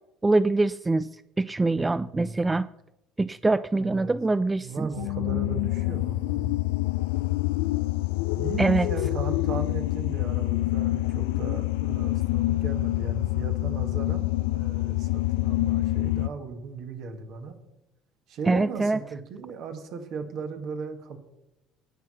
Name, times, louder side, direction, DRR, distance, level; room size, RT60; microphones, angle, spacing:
voice 1, 0.2-2.7 3.2-4.9 8.6-8.9 18.5-19.0, right 2 dB, 15° right, 17 dB, 0.3 m, -24 dB
voice 2, 1.9-2.6 3.7-4.2 4.6-6.7 8.4-17.6 18.3-21.2, right 5 dB, 50° right, 7 dB, 1.8 m, -37 dB
sound 1, 4.9-16.3, left 18 dB, 65° left, 0.4 m, -26 dB
18.5 x 6.3 x 5.6 m, 0.92 s
figure-of-eight pair, 60°, 0 cm